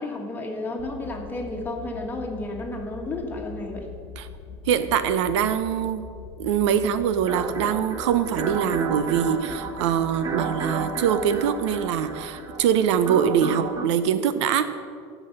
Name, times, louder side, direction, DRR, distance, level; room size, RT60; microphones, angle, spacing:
voice 1, 0.0-3.9, left 2 dB, 15° left, 1 dB, 1.6 m, -32 dB
sound 1, 0.8-13.9, left 6 dB, 70° left, 0.8 m, -44 dB
voice 2, 4.7-6.0 6.4-14.7, right 8 dB, 90° right, 12 dB, 0.8 m, -23 dB
sound 2, 7.3-13.9, right 4 dB, 25° right, 0.8 m, -32 dB
15.5 x 6.2 x 5.4 m, 2.2 s
supercardioid pair, 140°, 14 cm